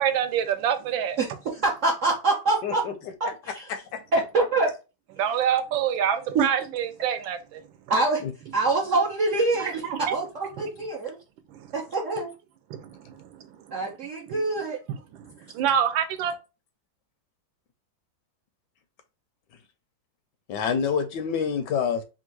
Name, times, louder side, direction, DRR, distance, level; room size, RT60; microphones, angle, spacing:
voice 1, 0.0-1.2 5.2-7.6 9.6-10.1 11.5-11.7 12.7-13.8 14.3-14.4 14.9-16.4, right 9 dB, 80° right, 1.4 m, -27 dB
voice 2, 1.2-2.8 3.2-3.3 3.5-3.7 4.1-4.7 6.3-6.5 7.9-8.2 8.5-11.2 11.7-12.3 13.7-14.8, right 3 dB, 65° right, 0.7 m, -25 dB
voice 3, 2.6-2.9 3.2-3.3 3.7-4.0 8.2-8.3 20.5-22.0, left 7 dB, 75° left, 1.1 m, -27 dB
3.5 x 2.4 x 4.5 m
omnidirectional pair, 2.1 m